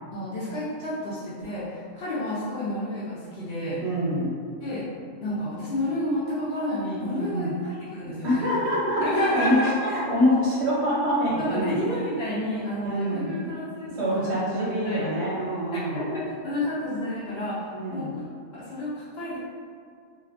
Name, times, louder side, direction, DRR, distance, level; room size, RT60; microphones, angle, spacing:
voice 1, 0.1-3.8 4.6-4.9 5.2-8.5 9.0-9.9 11.5-14.3 14.6-15.1 15.9-17.6 17.9-18.2 18.5-19.4, left 1 dB, 55° left, -10 dB, 0.8 m, -30 dB
voice 2, 3.8-4.4 7.2-7.5 8.0-9.6 9.9-11.8 12.8-13.3 14.0-16.0 17.7-18.2, equal, 65° right, -7 dB, 0.8 m, -25 dB
2.4 x 2.3 x 2.4 m, 2.1 s
omnidirectional pair, 1.4 m